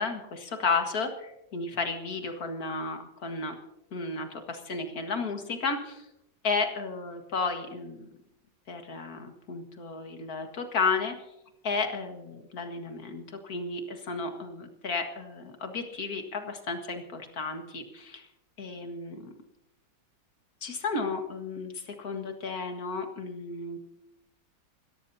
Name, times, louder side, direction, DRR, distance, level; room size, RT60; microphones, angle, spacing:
voice 1, 0.0-3.5 3.9-6.1 6.4-8.1 8.7-11.1 11.6-18.3 18.6-19.3 20.6-23.8, left 4 dB, 50° left, 5 dB, 2.2 m, -33 dB
28.0 x 13.5 x 2.8 m, 0.87 s
omnidirectional pair, 2.0 m